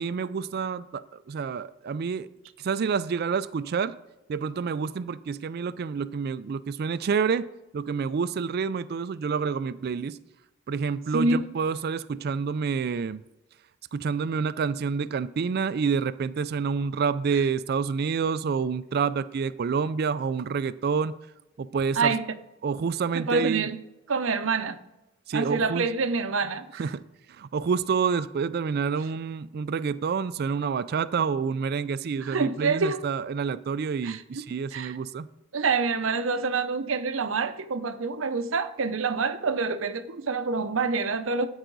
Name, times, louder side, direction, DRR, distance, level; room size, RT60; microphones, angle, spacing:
voice 1, 0.0-2.3 2.6-4.0 4.3-10.2 10.7-13.2 13.9-21.1 21.6-22.1 22.6-23.7 25.3-25.9 26.7-27.0 27.3-35.3, right 5 dB, 50° right, 0.3 m, -28 dB
voice 2, 23.1-23.8 24.1-24.8 25.3-26.8 32.2-33.0 34.0-34.2 34.7-35.0 35.5-41.5, right 4 dB, 70° right, 0.7 m, -26 dB
13.0 x 8.9 x 3.9 m
head